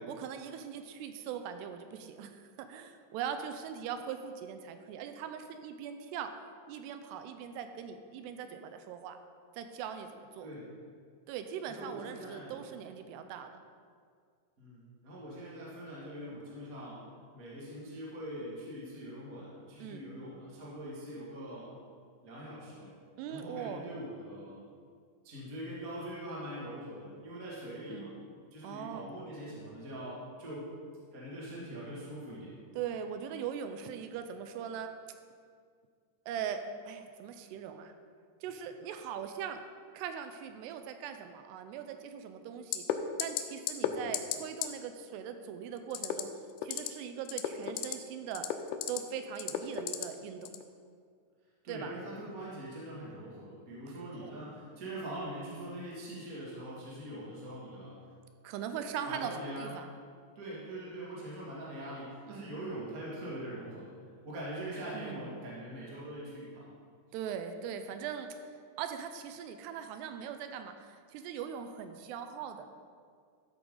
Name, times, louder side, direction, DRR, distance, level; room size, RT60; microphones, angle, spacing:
voice 1, 0.1-6.3 6.7-9.2 9.6-10.5 11.3-13.5 19.8-20.0 23.2-23.9 27.9-28.1 28.6-29.1 32.8-34.9 36.3-37.9 38.4-39.6 39.9-42.8 43.2-46.3 46.6-48.5 48.9-50.5 51.7-51.9 54.2-54.3 58.4-59.9 62.3-62.4 64.9-65.2 67.1-68.4 68.8-72.7, right 8 dB, 85° right, 8 dB, 2.6 m, -40 dB
voice 2, 10.4-10.7 11.6-12.6 14.6-21.7 22.2-22.9 23.3-24.6 25.2-28.2 28.5-30.7 31.1-32.5 43.8-44.1 51.6-58.0 59.0-59.7 60.3-63.9 64.2-66.7, right 1 dB, 35° right, -7 dB, 1.5 m, -43 dB
sound 1, 42.7-42.9 43.2-43.4 43.7-43.9 44.1-44.4 44.6-44.7 45.9-46.2 46.6-46.9 47.3-47.9 48.3-49.0 49.4-50.0 50.5-50.6, left 12 dB, 80° left, 2.4 m, -32 dB
13.0 x 8.4 x 3.8 m, 2.1 s
omnidirectional pair, 5.0 m